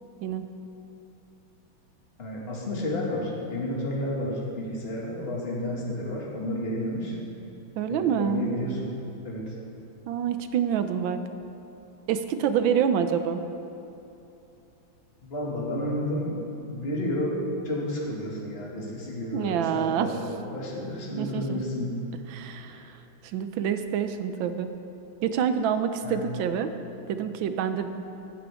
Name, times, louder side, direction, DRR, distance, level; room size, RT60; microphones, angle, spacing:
voice 1, 2.2-7.2 7.9-8.9 9.2-9.5 15.2-21.9 22.7-22.8 26.0-26.3, left 1 dB, 30° left, -4 dB, 2.3 m, -31 dB
voice 2, 7.8-8.4 10.1-11.2 12.1-13.4 19.3-20.1 21.2-21.6 22.3-22.8 23.2-24.7 25.2-26.7 27.1-27.9, right 8 dB, 75° right, 9 dB, 1.4 m, -27 dB
15.5 x 12.0 x 3.6 m, 2.8 s
omnidirectional pair, 2.2 m